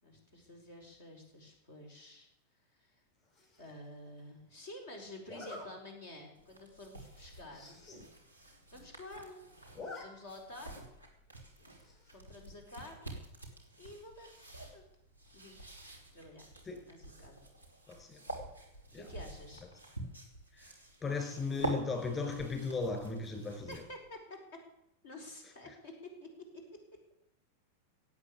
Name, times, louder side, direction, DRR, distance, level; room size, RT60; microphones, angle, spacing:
voice 1, 0.0-2.3 2.7-2.9 3.6-7.8 8.7-9.4 9.9-10.8 12.1-13.1 13.8-14.8 15.3-15.8 16.1-16.5 16.9-17.3 18.9-19.7 23.7-24.4 25.0-26.6, left 1 dB, 60° left, 3 dB, 5.0 m, -50 dB
Zipper (clothing), 3.3-3.7 5.3-5.7 6.2-6.4 6.7-6.8 7.0-7.1 7.4-8.0 8.4-8.5 8.7-9.2 9.5-10.0 10.4-10.5 11.8-12.2, left 3 dB, 45° left, 6.0 m, -48 dB
sound 1, 6.3-24.1, right 2 dB, 85° left, 3.4 m, -47 dB
voice 2, 17.9-18.2 18.9-19.1 20.5-20.7 21.0-23.8, left 4 dB, 25° left, 5 dB, 5.3 m, -36 dB
17.0 x 8.8 x 8.5 m, 0.80 s
figure-of-eight pair, 90°, 0 cm